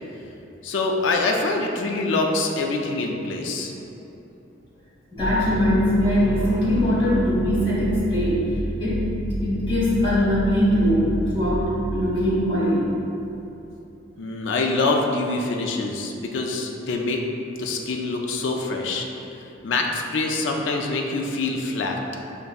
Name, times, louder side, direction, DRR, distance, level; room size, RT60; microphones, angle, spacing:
voice 1, 0.6-3.7 14.2-17.2 17.6-19.1 19.6-22.0, left 3 dB, 65° left, 1 dB, 0.4 m, -25 dB
voice 2, 5.1-8.4 8.8-12.9, equal, 25° left, -10 dB, 1.2 m, -21 dB
sound 1, 5.2-12.6, right 1 dB, 15° right, 0.5 m, -30 dB
5.4 x 2.6 x 2.3 m, 2.9 s
head